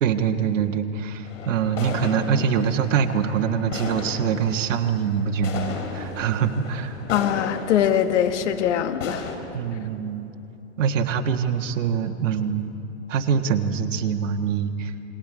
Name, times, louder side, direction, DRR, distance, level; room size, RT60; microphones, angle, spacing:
voice 1, 0.0-6.9 9.5-10.3 10.8-12.7 13.1-14.9, right 7 dB, 75° right, 6 dB, 1.5 m, -24 dB
sound 1, 1.2-9.4, left 4 dB, 85° left, 3.3 m, -36 dB
voice 2, 7.1-9.3, left 9 dB, 65° left, 9 dB, 1.4 m, -22 dB
28.0 x 20.5 x 5.0 m, 3.0 s
supercardioid pair, 155°, 37 cm